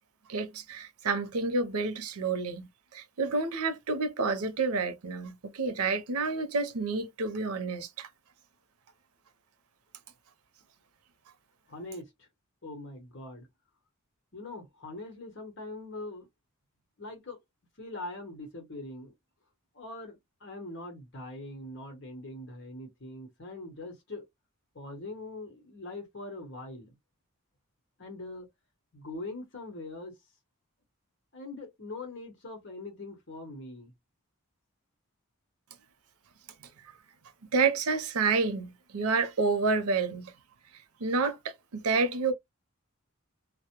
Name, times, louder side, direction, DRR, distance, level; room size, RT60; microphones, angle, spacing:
voice 1, 0.3-8.1 37.5-40.3 41.0-42.3, right 4 dB, 90° right, 0.6 m, -29 dB
voice 2, 11.7-12.3 12.6-13.5 14.3-16.3 17.0-17.4 17.8-19.1 19.7-24.2 24.7-27.0 28.0-28.5 28.9-30.2 31.3-33.9, left 2 dB, 55° left, 1.0 m, -42 dB
2.1 x 2.0 x 2.9 m
head